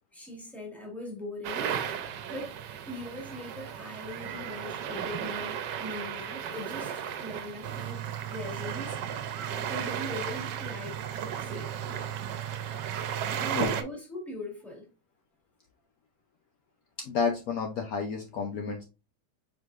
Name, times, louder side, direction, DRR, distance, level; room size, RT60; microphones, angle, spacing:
voice 1, 0.1-1.8 2.3-2.6 2.9-9.0 9.6-11.0 11.3-12.1 13.3-14.9, left 1 dB, ahead, 1.6 m, -41 dB
sound 1, 1.4-13.8, right 9 dB, 85° right, 1.3 m, -34 dB
voice 2, 17.0-18.8, left 5 dB, 65° left, 1.1 m, -30 dB
4.8 x 4.6 x 2.4 m
omnidirectional pair, 1.8 m